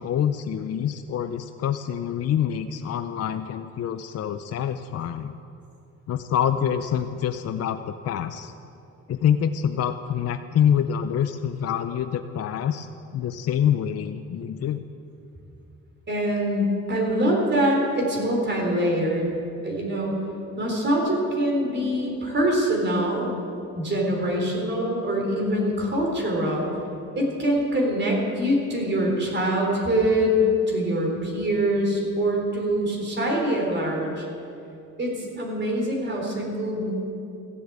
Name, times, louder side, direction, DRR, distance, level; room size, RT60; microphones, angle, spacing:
voice 1, 0.0-5.3 6.1-8.5 9.1-12.9 13.1-14.8, left 9 dB, 55° left, 8 dB, 0.6 m, -26 dB
voice 2, 16.1-19.3 19.6-20.2 20.6-23.3 23.8-26.7 27.2-30.4 30.7-34.3 35.0-36.9, right 1 dB, 35° right, -1 dB, 4.1 m, -24 dB
15.0 x 8.5 x 8.0 m, 2.7 s
cardioid pair, 90°, 30 cm